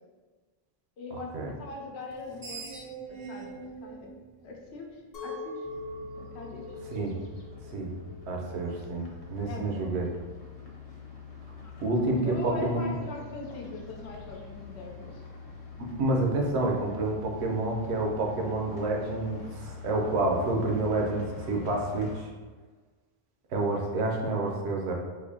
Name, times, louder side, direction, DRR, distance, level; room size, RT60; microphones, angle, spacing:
voice 1, 1.0-2.6 3.1-4.1 4.4-5.7 6.2-6.7 9.5-9.9 12.2-15.2, left 3 dB, 90° left, 0 dB, 0.9 m, -41 dB
Screech, 2.1-5.3, right 5 dB, 50° right, 0.3 m, -43 dB
Chink clink, 5.1-10.3, left 2 dB, 65° left, 1.0 m, -43 dB
sound 1, 5.6-22.2, left 5 dB, 45° left, 0.6 m, -45 dB
voice 2, 8.3-10.1 11.8-12.8 15.8-22.3 23.5-24.9, right 2 dB, 85° right, 0 dB, 1.0 m, -29 dB
4.1 x 2.6 x 2.7 m, 1.3 s
omnidirectional pair, 1.1 m